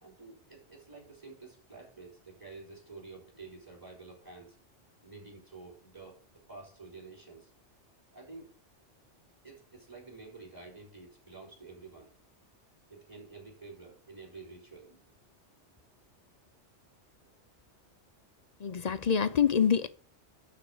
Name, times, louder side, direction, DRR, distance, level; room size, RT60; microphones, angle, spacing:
voice 1, 0.0-4.6 5.0-6.2 6.5-7.5 8.1-8.5 9.4-12.1 12.9-15.1 17.3-17.4, right 3 dB, 15° right, 3.7 m, -50 dB
voice 2, 18.6-19.9, left 7 dB, 50° left, 0.5 m, -26 dB
11.5 x 4.2 x 7.0 m
omnidirectional pair, 1.2 m